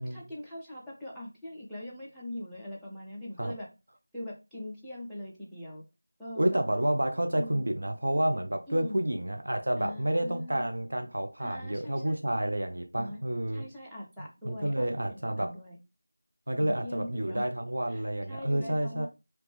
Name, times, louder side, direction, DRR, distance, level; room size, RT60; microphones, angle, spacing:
voice 1, 0.0-3.7 4.1-5.8 6.2-6.6 7.2-7.6 8.7-9.0 9.8-10.7 11.4-12.2 12.9-13.2 13.5-15.8 16.6-17.4 17.9-18.0 18.3-19.1, left 1 dB, ahead, 0.4 m, -41 dB
voice 2, 6.4-13.7 14.4-15.6 16.5-19.1, right 1 dB, 60° right, 0.5 m, -29 dB
3.3 x 2.9 x 3.2 m
figure-of-eight pair, 180°, 0 cm